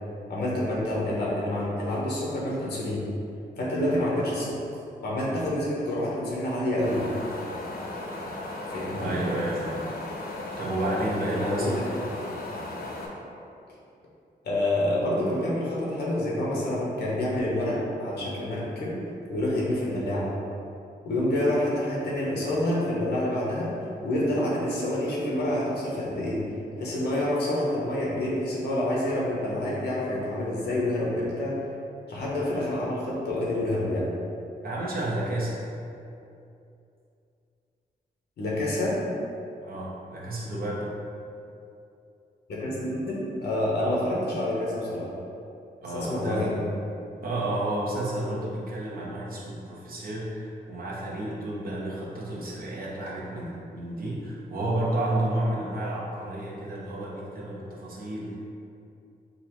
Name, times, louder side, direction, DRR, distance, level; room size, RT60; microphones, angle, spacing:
voice 1, 0.3-3.1 3.6-4.5 5.0-7.0 8.7-9.2 11.3-11.8 14.4-19.0 19.3-20.3 21.0-23.7 24.0-26.4 26.8-31.6 32.1-34.1 38.4-39.0 42.5-45.1 45.9-46.6, left 1 dB, 85° left, -5 dB, 1.1 m, -27 dB
Wind, 6.8-13.1, left 2 dB, 65° left, 0.7 m, -36 dB
voice 2, 8.9-10.0 10.6-11.9 34.6-35.7 39.6-40.9 45.8-46.5 47.2-58.4, right 1 dB, 60° right, -5 dB, 1.0 m, -31 dB
4.1 x 2.6 x 4.5 m, 2.6 s
cardioid pair, 95°, 17 cm